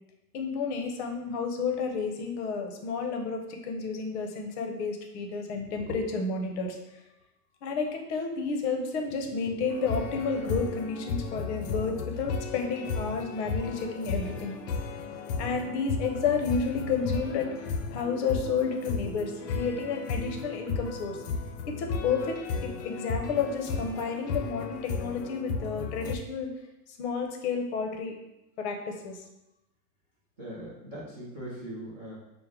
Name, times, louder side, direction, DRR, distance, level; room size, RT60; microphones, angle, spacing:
voice 1, 0.3-6.8 7.6-14.6 15.4-21.2 21.7-26.5 27.0-28.1 28.6-29.2, left 5 dB, 45° left, 3 dB, 0.6 m, -31 dB
sound 1, 9.7-26.2, left 4 dB, 85° left, 0.6 m, -34 dB
voice 2, 30.4-32.2, right 1 dB, 15° right, -11 dB, 0.3 m, -40 dB
4.6 x 2.1 x 3.5 m, 0.91 s
supercardioid pair, 145°, 47 cm